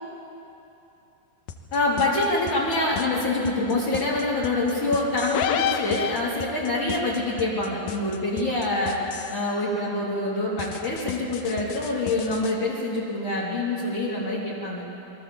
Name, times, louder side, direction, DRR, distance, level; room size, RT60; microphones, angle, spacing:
sound 1, 1.5-9.5 10.6-12.5, left 8 dB, 65° left, 2.6 m, -37 dB
voice 1, 1.7-9.0 9.3-14.8, left 2 dB, 45° left, -7 dB, 4.5 m, -25 dB
sound 2, 5.3-6.7, left 9 dB, 80° left, 3.4 m, -26 dB
28.0 x 23.0 x 7.2 m, 2.9 s
omnidirectional pair, 5.2 m